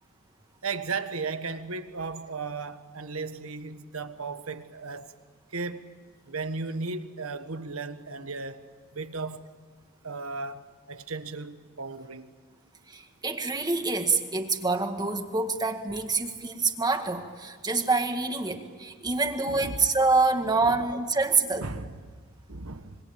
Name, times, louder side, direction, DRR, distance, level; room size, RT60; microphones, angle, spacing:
voice 1, 0.6-5.1 5.5-5.8 6.3-8.7 8.9-9.5 10.0-12.3 19.4-19.9 20.6-20.8 21.5-22.2 22.5-23.0, right 4 dB, 85° right, 1.5 m, -35 dB
voice 2, 12.9-21.7, right 3 dB, 20° right, 1.8 m, -26 dB
25.5 x 24.0 x 8.7 m
head